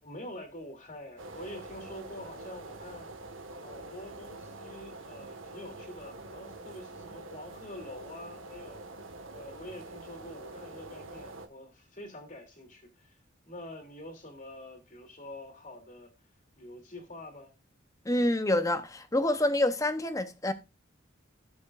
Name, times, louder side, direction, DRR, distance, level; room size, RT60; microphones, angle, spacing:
voice 1, 0.0-3.1 3.6-8.8 9.3-13.2 13.5-16.1 16.6-17.5, left 1 dB, 40° left, 3.0 m, -46 dB
sound 1, 1.2-11.5, right 2 dB, 75° right, 1.7 m, -45 dB
voice 2, 18.0-20.5, left 1 dB, 15° left, 0.9 m, -27 dB
17.0 x 7.1 x 2.5 m
head